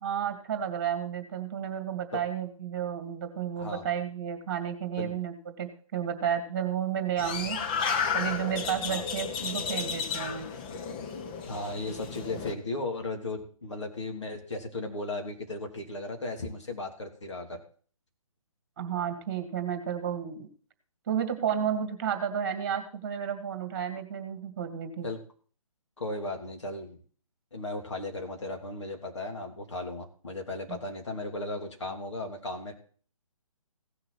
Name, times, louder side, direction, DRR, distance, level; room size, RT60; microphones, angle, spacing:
voice 1, 0.0-7.6 8.1-10.5 18.8-20.5 21.1-25.1 30.7-30.8, right 9 dB, 30° right, 7 dB, 2.3 m, -32 dB
sound 1, 7.2-12.5, left 6 dB, 15° left, 0.6 m, -33 dB
voice 2, 11.5-17.6 25.0-25.2 26.0-27.0 27.5-32.7, left 2 dB, 55° left, 3 dB, 2.9 m, -36 dB
16.5 x 6.5 x 4.4 m, 0.43 s
figure-of-eight pair, 140°, 18 cm